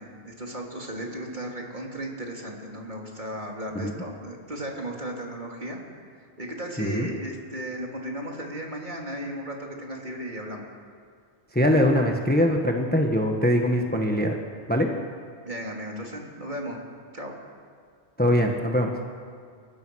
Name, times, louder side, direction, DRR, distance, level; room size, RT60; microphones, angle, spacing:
voice 1, 0.0-5.8 6.2-10.7 15.5-16.8 17.1-17.3, equal, 40° right, -1 dB, 3.5 m, -35 dB
voice 2, 6.8-7.1 11.5-14.3 14.7-14.9 18.2-18.9, equal, 10° left, 2 dB, 1.4 m, -22 dB
29.5 x 16.0 x 6.4 m, 2.2 s
omnidirectional pair, 1.2 m